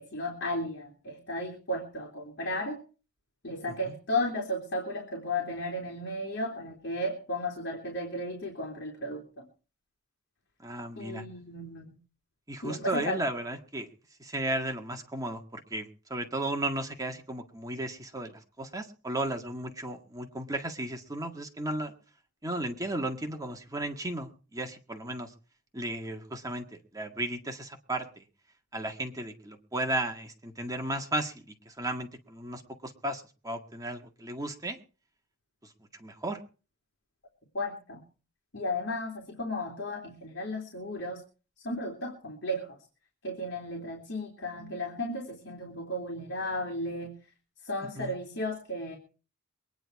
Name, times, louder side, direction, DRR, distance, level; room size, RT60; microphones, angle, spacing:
voice 1, 0.0-2.8 3.4-9.4 10.9-11.9 12.6-13.2 37.5-38.0 38.5-41.2 41.6-42.8 43.2-47.1 47.6-49.0, left 1 dB, 55° left, 1 dB, 3.5 m, -34 dB
voice 2, 10.6-11.2 12.5-13.9 14.2-21.9 22.4-25.3 25.7-28.2 28.7-34.8 36.0-36.4 48.0-48.1, right 1 dB, 15° right, 4 dB, 1.8 m, -35 dB
23.0 x 10.0 x 4.8 m, 0.36 s
head